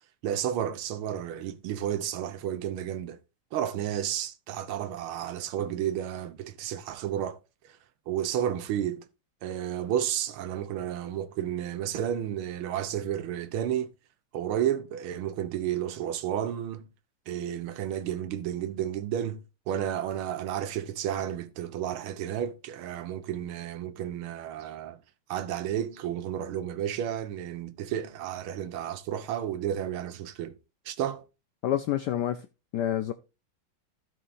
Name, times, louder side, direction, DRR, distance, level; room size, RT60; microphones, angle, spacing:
voice 1, 0.2-3.2 3.5-7.4 7.6-7.8 8.1-9.1 9.4-13.9 14.3-16.9 17.3-25.0 25.3-30.6 30.9-31.2, right 10 dB, 85° right, 1.7 m, -32 dB
voice 2, 31.6-32.5 32.7-33.1, left 11 dB, 70° left, 1.1 m, -28 dB
15.5 x 5.7 x 2.6 m
omnidirectional pair, 2.3 m